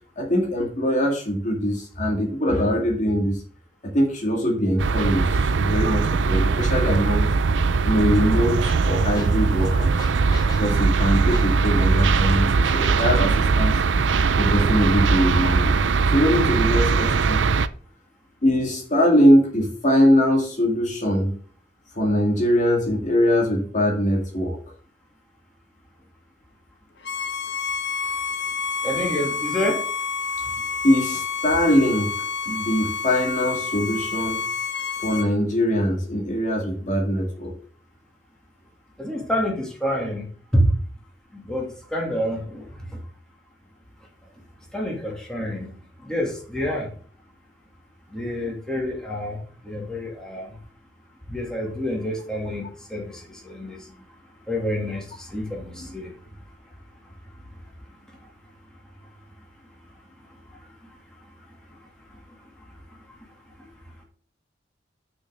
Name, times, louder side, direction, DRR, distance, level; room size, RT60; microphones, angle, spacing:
voice 1, 0.2-3.4 3.8-7.3 7.8-9.9 10.6-13.8 14.4-15.8 16.1-17.4 18.4-21.3 22.0-24.6 30.8-32.2 32.5-34.4 35.0-37.5 55.8-55.9, equal, 45° left, 0 dB, 2.2 m, -22 dB
sound 1, 4.8-17.7, right 4 dB, 85° right, 0.5 m, -20 dB
sound 2, 8.0-13.3, left 1 dB, 20° left, 3.1 m, -37 dB
Bowed string instrument, 27.0-35.3, left 5 dB, 65° left, 1.0 m, -29 dB
voice 2, 28.8-29.8 39.0-40.3 40.5-40.7 41.4-42.7 44.7-45.7 46.0-46.9 48.1-49.4 49.6-50.5 51.3-53.8 54.5-56.1, equal, 5° left, -2 dB, 2.8 m, -27 dB
6.5 x 6.2 x 6.5 m, 0.43 s
head